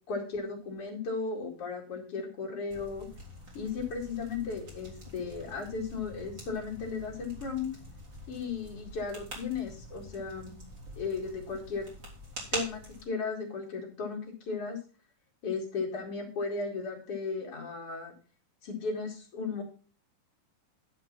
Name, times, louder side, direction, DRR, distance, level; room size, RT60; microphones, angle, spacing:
voice 1, 0.1-3.1 3.5-7.7 8.3-10.5 11.0-11.9 12.5-14.8 15.4-18.1 18.6-19.6, left 4 dB, 45° left, -1 dB, 3.0 m, -35 dB
sound 1, 2.7-13.0, right 1 dB, 30° right, 4.0 m, -45 dB
11.5 x 5.3 x 6.0 m, 0.40 s
omnidirectional pair, 4.0 m